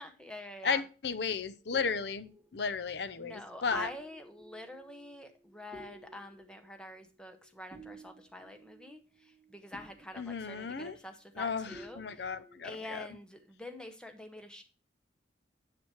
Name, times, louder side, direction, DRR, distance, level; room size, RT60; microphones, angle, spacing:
voice 1, 0.0-0.8 3.2-9.0 9.5-12.3 12.6-14.6, left 1 dB, 5° left, 0.8 m, -46 dB
voice 2, 0.6-3.9 10.2-11.0 11.4-13.1, left 5 dB, 65° left, 0.6 m, -34 dB
sound 1, 1.3-11.4 11.7-12.6, right 1 dB, 10° right, 1.1 m, -55 dB
7.1 x 6.1 x 4.5 m
head